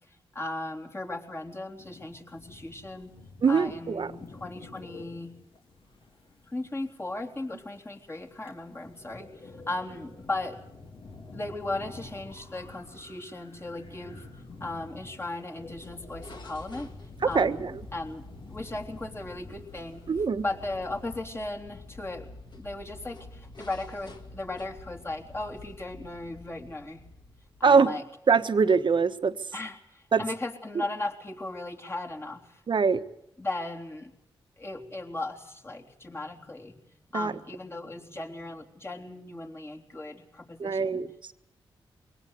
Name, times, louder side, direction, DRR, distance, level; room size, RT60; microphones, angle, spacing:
voice 1, 0.1-3.2 3.5-5.3 6.5-10.6 11.3-14.3 14.6-16.9 17.3-18.2 18.5-20.0 20.4-22.3 22.5-27.0 27.6-28.0 29.5-32.6 33.4-34.1 34.6-36.8 37.1-41.0, left 2 dB, 25° left, 3.6 m, -37 dB
sound 1, 1.8-21.2, left 3 dB, 65° left, 3.8 m, -49 dB
voice 2, 3.4-4.1 17.3-17.7 20.1-20.4 27.6-27.9 28.3-29.4 30.1-30.2 32.7-33.0 37.1-37.3 40.6-41.3, right 5 dB, 55° right, 1.2 m, -23 dB
sound 2, 15.6-27.8, left 2 dB, 50° left, 2.5 m, -48 dB
23.0 x 18.0 x 8.2 m
cardioid pair, 60°, 10 cm